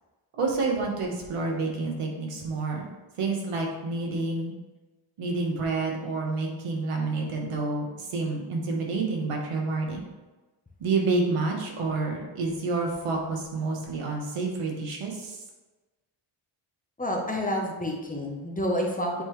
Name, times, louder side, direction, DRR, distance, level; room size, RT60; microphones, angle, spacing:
voice 1, 0.4-2.8 3.2-4.5 5.2-10.0 10.8-15.4, right 3 dB, 90° right, 0 dB, 1.3 m, -29 dB
voice 2, 17.0-19.2, equal, 15° left, 0 dB, 0.9 m, -29 dB
7.6 x 3.9 x 3.1 m, 1.2 s
wide cardioid pair, 105°, 50 cm